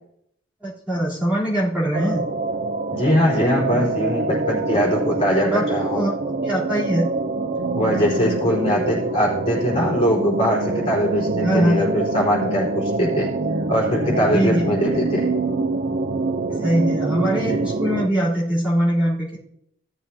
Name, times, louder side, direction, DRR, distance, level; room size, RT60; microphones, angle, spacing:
voice 1, 0.6-2.2 5.1-7.1 11.4-11.8 14.3-14.7 16.6-19.4, right 1 dB, 5° right, -10 dB, 3.6 m, -22 dB
sound 1, 1.9-18.1, right 3 dB, 45° right, 0.6 m, -25 dB
voice 2, 2.9-6.0 7.7-13.3 13.7-15.3 17.5-17.6, equal, 25° left, -5 dB, 4.3 m, -21 dB
17.0 x 7.2 x 2.8 m, 0.71 s
head